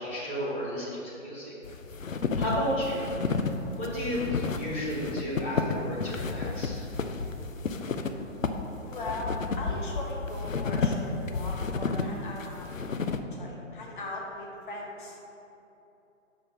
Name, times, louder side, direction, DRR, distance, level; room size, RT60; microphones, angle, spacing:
voice 1, 0.0-1.5 2.3-3.0 3.8-6.8, equal, 10° left, -8 dB, 0.6 m, -32 dB
sound 1, 1.6-13.2, left 4 dB, 80° left, 0.6 m, -32 dB
voice 2, 8.8-12.6 13.3-15.2, left 2 dB, 40° left, -2 dB, 1.4 m, -38 dB
5.8 x 5.2 x 6.0 m, 2.9 s
figure-of-eight pair, 135°, 39 cm